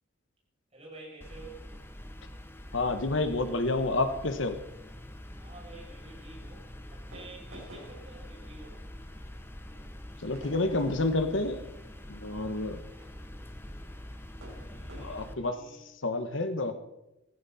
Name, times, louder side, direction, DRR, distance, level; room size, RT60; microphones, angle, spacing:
voice 1, 0.7-1.6 5.4-6.6 6.9-8.9 12.2-12.8 14.5-15.9, right 3 dB, 30° right, -5 dB, 7.3 m, -50 dB
sound 1, 1.2-15.3, left 1 dB, 10° left, 1.0 m, -45 dB
voice 2, 2.7-4.6 10.2-11.7 12.1-12.8 15.0-15.6 16.0-16.8, left 2 dB, 60° left, 9 dB, 1.3 m, -29 dB
sound 2, 6.6-15.1, equal, 80° right, 6.5 m, -54 dB
16.0 x 15.5 x 4.3 m, 0.91 s
head